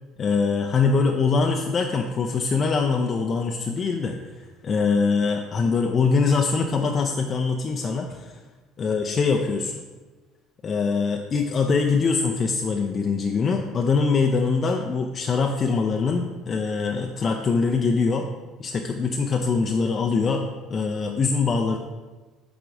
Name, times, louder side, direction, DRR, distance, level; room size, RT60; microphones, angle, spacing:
voice 1, 0.2-4.2 4.6-8.4 8.8-9.8 10.6-18.3 18.6-21.8, left 4 dB, 40° left, 3 dB, 0.5 m, -23 dB
8.4 x 5.0 x 2.6 m, 1.2 s
figure-of-eight pair, 60°, 0 cm